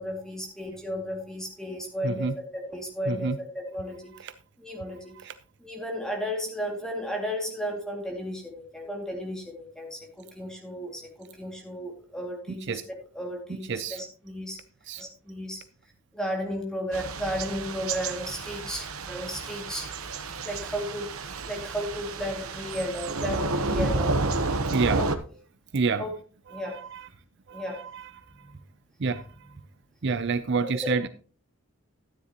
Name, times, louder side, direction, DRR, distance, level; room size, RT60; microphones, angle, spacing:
voice 1, 0.0-4.1 4.6-5.1 5.6-12.8 13.1-14.6 15.0-15.6 16.1-24.3 25.0-25.1 26.0-26.1 26.5-26.8 27.5-27.8 28.5-28.6 30.8-30.9, equal, 5° left, 1 dB, 2.3 m, -34 dB
voice 2, 2.0-2.4 3.1-3.4 4.2-4.3 5.1-5.4 12.5-12.8 13.5-14.0 14.9-15.0 24.7-25.0 25.7-26.1 26.5-27.1 27.5-28.1 29.0-29.3 30.0-31.1, right 4 dB, 55° right, 12 dB, 0.5 m, -29 dB
Thunder / Rain, 16.9-25.2, right 3 dB, 75° right, 1.0 m, -31 dB
12.5 x 10.0 x 3.0 m, 0.39 s
head